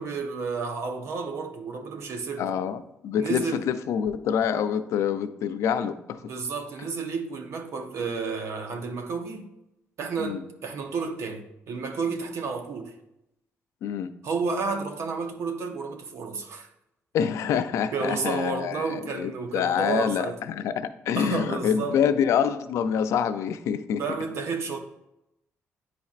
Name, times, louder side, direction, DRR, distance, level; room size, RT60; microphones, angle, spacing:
voice 1, 0.0-2.5 3.2-3.6 6.2-9.5 10.0-12.9 14.2-16.7 17.4-17.6 17.9-20.4 21.2-22.0 24.0-24.8, right 4 dB, 65° right, 0.8 m, -31 dB
voice 2, 2.4-6.3 10.2-10.4 13.8-14.1 17.1-24.0, left 8 dB, 80° left, 0.4 m, -26 dB
9.4 x 4.2 x 2.4 m
cardioid pair, 100°, 5 cm